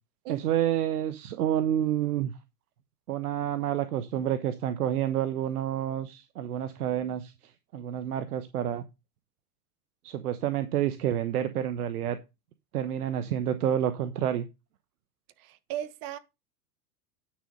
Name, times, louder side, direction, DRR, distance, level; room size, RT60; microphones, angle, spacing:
voice 1, 0.3-2.3 3.1-8.8 10.0-12.2 12.7-14.5, right 10 dB, 70° right, 1.1 m, -29 dB
voice 2, 15.5-16.2, right 11 dB, 45° right, 1.3 m, -36 dB
9.7 x 6.5 x 5.3 m
hypercardioid pair, 90°, 47 cm